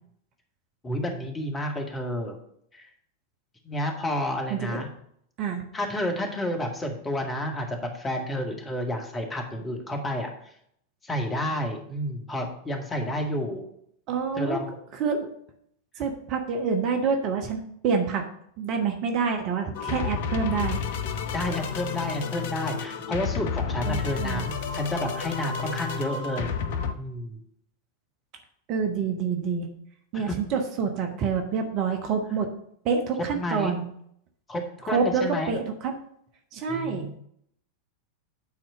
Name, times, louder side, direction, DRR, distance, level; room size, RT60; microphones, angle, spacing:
voice 1, 0.8-2.4 2.7-2.9 3.6-4.9 5.7-10.3 11.0-13.6 14.4-14.8 21.3-26.5 27.0-27.4 30.1-30.3 33.2-33.7 34.5-35.6 36.7-37.1, left 1 dB, 15° left, 2 dB, 1.9 m, -30 dB
voice 2, 4.5-4.8 5.4-5.6 14.1-14.6 14.9-15.3 16.0-18.3 18.6-20.8 23.8-24.5 28.7-29.7 30.1-32.5 32.8-33.8 34.8-36.0 36.5-37.1, right 5 dB, 40° right, 4 dB, 1.1 m, -27 dB
sound 1, 19.7-26.9, left 6 dB, 55° left, 0.7 m, -31 dB
9.5 x 4.3 x 6.7 m, 0.69 s
figure-of-eight pair, 90°, 0 cm